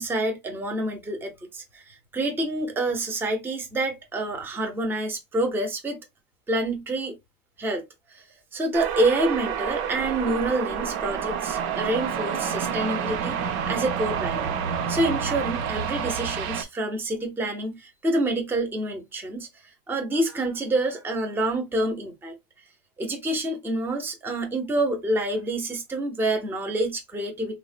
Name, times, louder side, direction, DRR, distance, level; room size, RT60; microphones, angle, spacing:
voice 1, 0.0-6.0 6.5-7.2 7.6-8.2 8.5-13.4 13.7-14.5 14.9-19.5 19.9-22.4 23.0-27.6, right 1 dB, 5° right, 0.4 m, -27 dB
sound 1, 8.7-16.6, right 7 dB, 65° right, 0.6 m, -28 dB
3.5 x 2.1 x 2.4 m
supercardioid pair, 125°, 45 cm